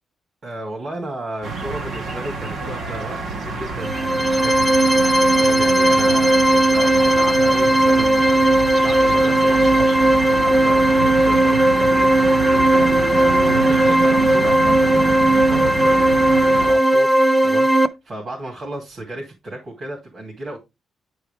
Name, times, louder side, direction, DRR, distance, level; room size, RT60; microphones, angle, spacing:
voice 1, 0.4-10.0 10.2-16.2 16.6-17.1 17.4-20.6, right 1 dB, 45° right, 2.7 m, -34 dB
sound 1, 1.4-16.7, right 3 dB, 75° right, 2.2 m, -28 dB
sound 2, 3.8-17.9, right 1 dB, ahead, 0.5 m, -16 dB
9.4 x 4.6 x 3.5 m
cardioid pair, 130°, 0 cm